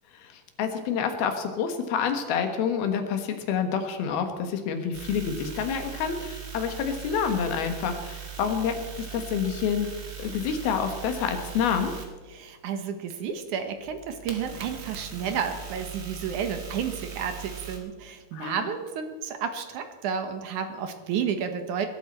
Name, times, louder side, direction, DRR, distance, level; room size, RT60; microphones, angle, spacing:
voice 1, 0.1-9.9 10.2-11.9 18.3-18.7, left 7 dB, 80° left, 6 dB, 3.2 m, -28 dB
sound 1, 4.9-12.0 13.1-17.8, right 7 dB, 45° right, 2.0 m, -40 dB
voice 2, 12.3-21.9, right 7 dB, 65° right, 7 dB, 2.1 m, -31 dB
21.5 x 12.5 x 4.3 m, 1.4 s
omnidirectional pair, 4.4 m